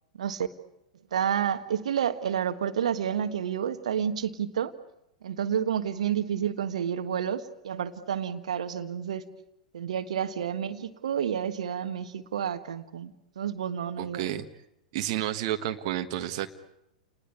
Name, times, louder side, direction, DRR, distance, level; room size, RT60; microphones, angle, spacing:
voice 1, 1.1-4.7 5.2-9.2 9.7-14.3, right 8 dB, 60° right, 11 dB, 1.5 m, -30 dB
voice 2, 14.0-14.4 14.9-16.5, right 12 dB, 45° right, 7 dB, 1.4 m, -30 dB
29.5 x 20.0 x 8.7 m, 0.85 s
figure-of-eight pair, 100°, 4 cm